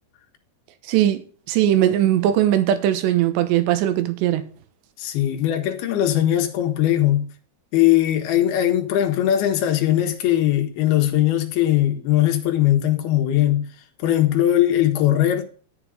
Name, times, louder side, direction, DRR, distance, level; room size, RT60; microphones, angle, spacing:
voice 1, 0.9-4.4, right 12 dB, 85° right, 3.2 m, -19 dB
voice 2, 5.0-7.3 7.7-13.7 14.0-15.4, left 12 dB, 70° left, 3.1 m, -20 dB
12.0 x 7.5 x 3.8 m
omnidirectional pair, 5.0 m